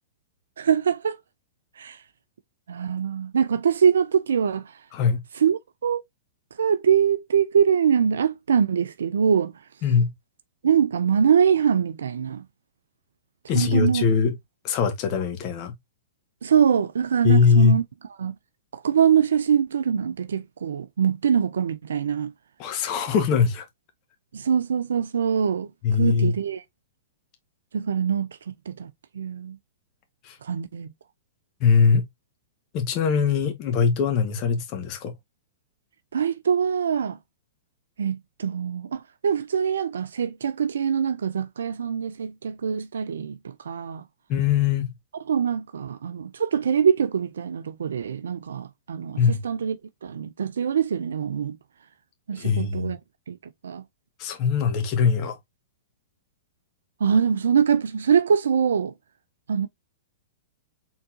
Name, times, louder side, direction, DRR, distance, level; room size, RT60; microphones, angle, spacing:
voice 1, 0.6-1.2 1.8-2.0 2.7-4.7 5.4-6.0 6.6-9.5 10.6-12.4 13.5-14.1 16.4-17.8 18.2-18.3 18.7-22.3 24.3-25.7 26.0-26.6 27.7-28.9 29.1-29.6 30.4-30.9 36.1-37.2 38.0-44.0 45.3-49.8 50.0-51.6 52.3-53.0 53.3-53.4 53.6-53.8 57.0-58.9 59.5-59.7, right 7 dB, 80° right, 0.4 m, -23 dB
voice 2, 4.9-5.2 9.8-10.1 13.5-14.3 14.6-15.7 17.2-17.8 22.6-23.6 25.8-26.3 30.2-30.4 31.6-32.0 32.7-35.1 44.3-44.9 49.2-49.4 52.4-52.9 54.2-55.4, left 6 dB, 40° left, 1.2 m, -21 dB
4.4 x 3.9 x 2.6 m
hypercardioid pair, 115°, 0 cm